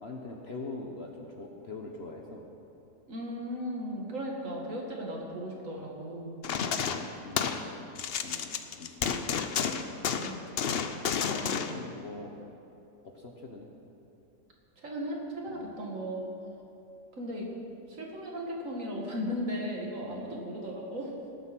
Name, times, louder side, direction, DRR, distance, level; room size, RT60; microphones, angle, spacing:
voice 1, 0.0-2.5 4.4-4.5 6.8-9.2 11.3-12.3 13.0-13.7 15.5-15.7 20.0-20.3, left 3 dB, 45° left, 0 dB, 1.1 m, -43 dB
voice 2, 3.1-6.4 10.1-10.5 11.3-11.8 14.8-16.2 17.2-17.5 17.9-21.1, equal, 50° right, -1 dB, 2.2 m, -36 dB
sound 1, 6.4-7.7 8.0-11.8, left 7 dB, 65° left, 0.6 m, -31 dB
19.5 x 8.0 x 6.0 m, 2.8 s
omnidirectional pair, 1.8 m